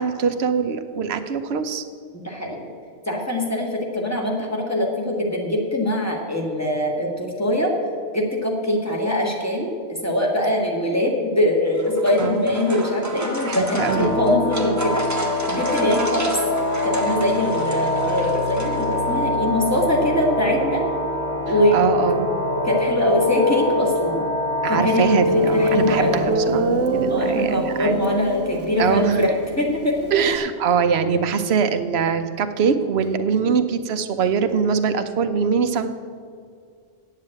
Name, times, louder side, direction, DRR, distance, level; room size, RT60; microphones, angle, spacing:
voice 1, 0.0-1.8 12.2-12.5 13.5-14.2 21.7-22.3 24.6-28.0 28.8-29.2 30.1-36.0, right 6 dB, 65° right, 9 dB, 1.0 m, -22 dB
voice 2, 2.1-2.7 3.1-7.7 8.1-15.0 15.5-16.3 16.8-20.8 21.5-21.8 22.6-24.2 24.7-25.1 25.3-26.3 27.1-30.1 33.5-33.6, left 1 dB, 15° left, -1 dB, 1.8 m, -22 dB
sound 1, 11.6-19.3, right 1 dB, 15° right, 0.9 m, -33 dB
sound 2, 13.8-26.3, left 1 dB, 80° left, 2.9 m, -24 dB
Guitar, 25.7-25.8 26.3-30.4, right 3 dB, 90° right, 1.1 m, -26 dB
8.7 x 7.5 x 8.9 m, 2.1 s
omnidirectional pair, 1.2 m